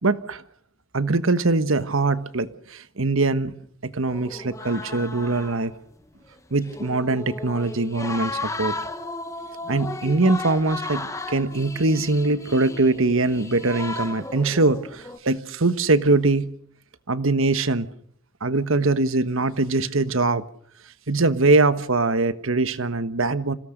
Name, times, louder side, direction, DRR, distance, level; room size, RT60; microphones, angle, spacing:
voice 1, 0.0-0.4 0.9-3.6 3.8-5.7 6.5-8.8 9.7-16.5 17.1-17.9 18.4-20.4 21.1-23.5, right 3 dB, 70° right, 13 dB, 1.2 m, -22 dB
sound 1, 4.1-5.8 6.0-6.1 6.5-15.2, left 2 dB, 15° left, 1.1 m, -35 dB
27.0 x 17.5 x 6.6 m, 0.62 s
head